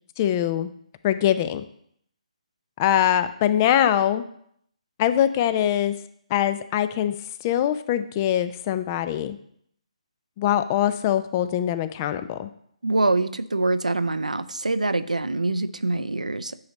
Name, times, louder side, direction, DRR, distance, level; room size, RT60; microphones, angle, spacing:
voice 1, 0.2-0.7 1.0-1.6 2.8-4.2 5.0-6.0 6.3-7.1 7.4-9.4 10.4-12.5, left 11 dB, 25° left, 12 dB, 0.4 m, -23 dB
voice 2, 12.8-16.6, right 2 dB, 85° right, 13 dB, 0.4 m, -24 dB
9.5 x 3.9 x 4.1 m, 0.68 s
figure-of-eight pair, 140°, 4 cm